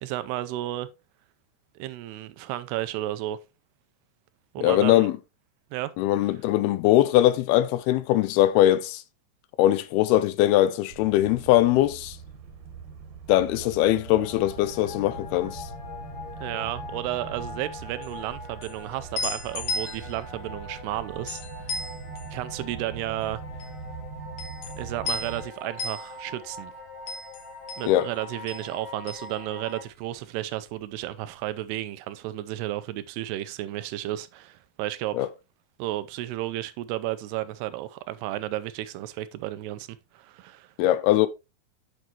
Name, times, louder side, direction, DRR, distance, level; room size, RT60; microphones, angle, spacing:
voice 1, 0.0-0.9 1.8-3.4 4.5-5.1 5.7-5.9 16.4-21.7 22.3-23.4 24.8-26.7 27.8-35.2 35.8-40.7, right 14 dB, 90° right, 2.8 m, -33 dB
voice 2, 4.6-5.2 6.0-9.0 9.6-12.2 13.3-15.7 27.9-28.1 35.1-35.3 40.8-41.3, left 14 dB, 80° left, 2.4 m, -21 dB
sound 1, 10.9-25.5, right 5 dB, 60° right, 2.2 m, -42 dB
sound 2, 13.3-29.8, left 3 dB, 30° left, 2.6 m, -43 dB
sound 3, 18.0-30.2 30.5-31.6, left 2 dB, 60° left, 2.6 m, -37 dB
8.3 x 6.4 x 3.0 m
omnidirectional pair, 4.6 m